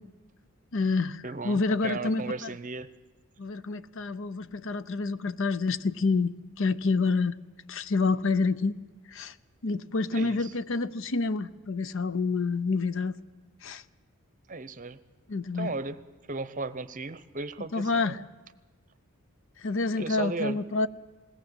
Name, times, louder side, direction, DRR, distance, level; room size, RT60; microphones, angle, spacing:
voice 1, 0.7-2.2 3.4-7.4 7.7-8.8 9.1-9.3 9.6-13.2 13.6-13.8 15.3-15.7 17.7-18.2 19.6-20.9, left 3 dB, 60° left, 0.6 m, -28 dB
voice 2, 1.2-2.9 10.1-10.5 14.5-15.0 15.5-16.0 16.3-18.3 19.9-20.6, right 3 dB, 35° right, 0.7 m, -36 dB
21.0 x 17.5 x 7.8 m
head